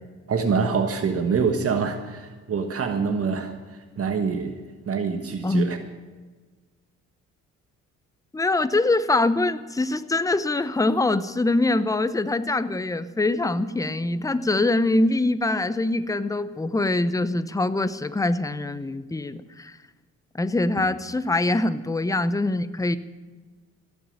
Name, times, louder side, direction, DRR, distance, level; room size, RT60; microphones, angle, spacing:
voice 1, 0.3-3.5 4.0-4.5 4.9-5.8, right 5 dB, 50° right, 6 dB, 1.4 m, -25 dB
voice 2, 8.3-19.8 20.3-23.0, left 2 dB, 10° left, 13 dB, 0.7 m, -24 dB
16.5 x 7.1 x 10.0 m, 1.3 s
cardioid pair, 90°, 30 cm